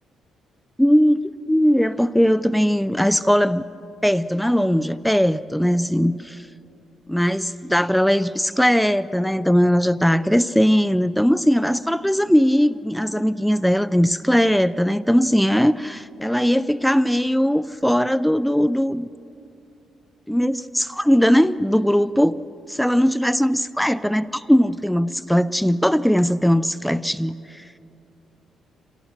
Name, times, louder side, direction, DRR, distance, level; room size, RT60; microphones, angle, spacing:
voice 1, 0.8-3.6 4.0-6.4 7.1-19.1 20.3-22.4 22.7-27.6, equal, ahead, 16 dB, 0.4 m, -19 dB
26.0 x 18.0 x 7.4 m, 2.7 s
cardioid pair, 90°, 0 cm